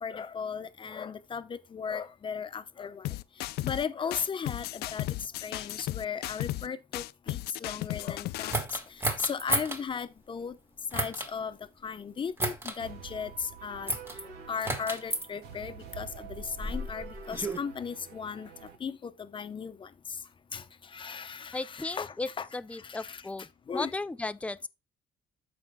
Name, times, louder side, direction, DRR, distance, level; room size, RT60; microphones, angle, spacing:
voice 1, 0.0-3.1 3.6-10.6 10.9-11.6 11.8-13.9 14.5-20.2 20.5-22.5 22.7-23.9, left 6 dB, 30° left, 0.8 m, -37 dB
sound 1, 3.0-3.8 4.1-6.7 6.9-8.6, left 16 dB, 80° left, 0.5 m, -35 dB
sound 2, 8.5-9.8 10.9-11.3 12.4-12.8 13.9-14.2 14.6-15.3 16.2-17.6, right 1 dB, 15° right, 1.5 m, -32 dB
sound 3, 12.8-18.7, right 7 dB, 80° right, 2.4 m, -47 dB
voice 2, 21.5-23.5 23.7-24.7, left 2 dB, 10° left, 0.5 m, -35 dB
13.0 x 5.2 x 2.2 m
cardioid pair, 120°, 16 cm